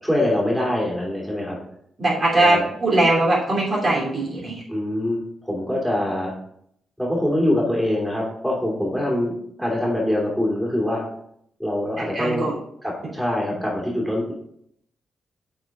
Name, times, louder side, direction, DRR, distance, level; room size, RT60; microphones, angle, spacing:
voice 1, 0.0-1.6 2.4-2.7 4.7-6.3 7.0-9.3 9.6-11.0 11.6-12.5 12.8-14.3, left 1 dB, 5° right, -3 dB, 3.0 m, -24 dB
voice 2, 2.0-4.6 12.1-12.5, right 2 dB, 45° right, -4 dB, 3.0 m, -20 dB
7.8 x 4.7 x 3.7 m, 0.70 s
cardioid pair, 65°, 0 cm